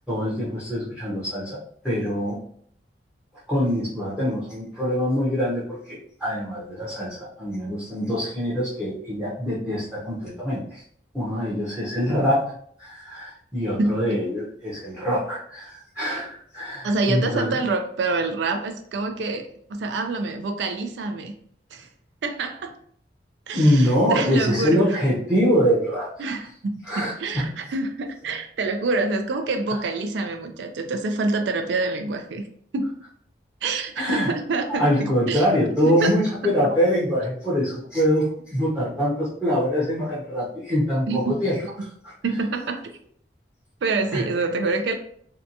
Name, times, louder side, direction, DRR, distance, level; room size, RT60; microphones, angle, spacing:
voice 1, 0.1-2.4 3.5-10.8 11.1-12.5 12.8-17.6 23.5-26.1 26.9-27.5 34.0-34.3 34.7-41.6 42.0-42.1 44.1-44.2, equal, 5° right, -8 dB, 0.6 m, -24 dB
voice 2, 13.8-14.2 16.8-21.3 21.7-21.9 22.2-22.7 23.5-25.0 26.2-32.4 32.7-32.9 33.6-35.4 35.8-36.1 36.4-36.8 41.1-41.4 42.2-43.0 43.8-44.9, right 3 dB, 80° right, 6 dB, 0.4 m, -26 dB
2.7 x 2.2 x 2.6 m, 0.63 s
head